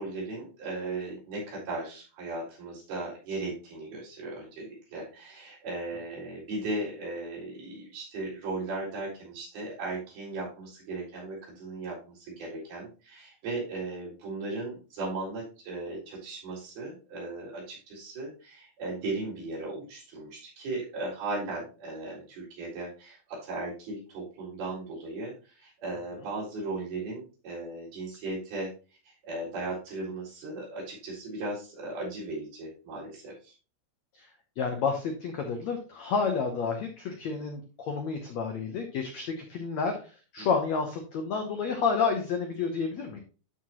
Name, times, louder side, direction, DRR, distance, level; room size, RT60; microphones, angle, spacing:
voice 1, 0.0-28.7 29.0-33.5 40.4-40.5, right 2 dB, 65° right, -5 dB, 6.0 m, -37 dB
voice 2, 34.6-43.2, left 5 dB, 85° left, 4 dB, 1.5 m, -30 dB
12.5 x 4.8 x 3.0 m, 0.34 s
omnidirectional pair, 4.7 m